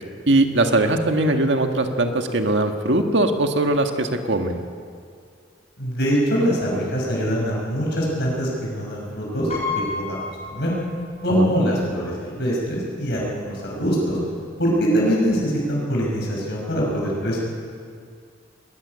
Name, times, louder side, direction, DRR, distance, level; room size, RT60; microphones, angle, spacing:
voice 1, 0.3-4.6 11.3-11.6, right 2 dB, 65° right, 5 dB, 1.7 m, -20 dB
voice 2, 5.8-9.5 9.9-10.7 11.2-14.2 14.6-17.4, equal, 60° left, -3 dB, 6.0 m, -23 dB
Piano, 9.5-11.3 11.6-11.7 12.9-13.0 13.3-13.5, left 4 dB, 35° left, 7.9 m, -31 dB
21.0 x 13.5 x 9.7 m, 2.2 s
head